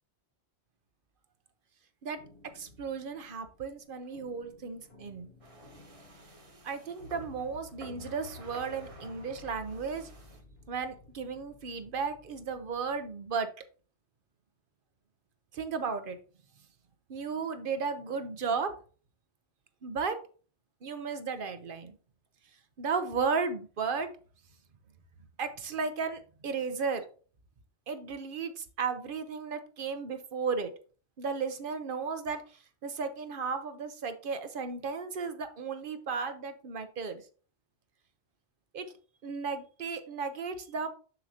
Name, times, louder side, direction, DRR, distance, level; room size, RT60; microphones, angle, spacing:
sound 1, 2.1-13.4, left 2 dB, 70° left, 1.4 m, -54 dB
voice 1, 2.5-5.3 6.6-10.1 10.7-13.5 15.5-16.2 17.1-18.7 19.8-20.2 20.8-22.0 22.8-24.1 25.4-27.0 27.9-30.7 31.2-32.4 32.8-37.2 38.7-38.9 39.2-40.9, right 5 dB, 55° right, 9 dB, 0.9 m, -34 dB
sound 2, 5.4-10.4, right 2 dB, 35° right, 1.1 m, -53 dB
6.9 x 6.3 x 2.8 m, 0.40 s
omnidirectional pair, 1.1 m